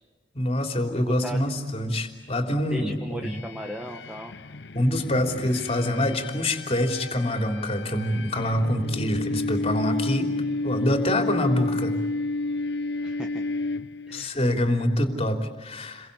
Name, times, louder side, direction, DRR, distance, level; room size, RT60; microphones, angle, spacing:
voice 1, 0.3-3.4 4.7-10.3 10.6-12.0 14.1-16.1, left 1 dB, 35° left, 5 dB, 3.4 m, -25 dB
voice 2, 0.9-1.4 2.7-4.3 13.0-13.4 14.1-14.4, equal, 5° right, 2 dB, 1.5 m, -37 dB
sound 1, 3.2-14.3, left 2 dB, 70° left, 0.8 m, -31 dB
30.0 x 23.0 x 8.4 m, 1.3 s
head